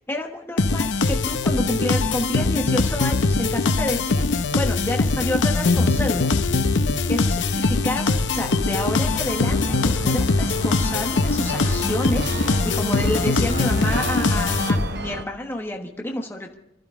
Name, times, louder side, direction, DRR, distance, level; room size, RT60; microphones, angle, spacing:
voice 1, 0.1-6.3 7.1-16.5, left 1 dB, 15° left, 2 dB, 1.2 m, -29 dB
sound 1, 0.6-15.1, left 3 dB, 90° left, 0.8 m, -22 dB
sound 2, 7.1-15.3, right 3 dB, 60° right, 0.8 m, -34 dB
26.0 x 12.0 x 3.7 m, 0.85 s
head